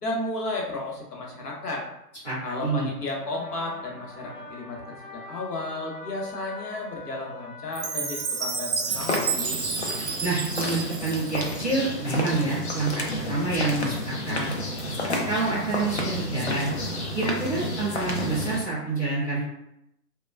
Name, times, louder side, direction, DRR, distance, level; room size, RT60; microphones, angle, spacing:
voice 1, 0.0-1.8 2.4-9.6, left 2 dB, 70° left, -1 dB, 0.9 m, -33 dB
voice 2, 2.2-2.9 10.2-14.5 15.3-16.7 17.1-19.4, right 3 dB, 10° left, -15 dB, 0.7 m, -27 dB
sound 1, 2.8-9.2, left 3 dB, 10° right, 1.0 m, -45 dB
Chime, 7.7-11.9, right 5 dB, 55° right, 0.6 m, -31 dB
sound 2, 8.9-18.6, left 1 dB, 45° left, 0.4 m, -31 dB
2.9 x 2.2 x 2.2 m, 0.82 s
figure-of-eight pair, 135°, 49 cm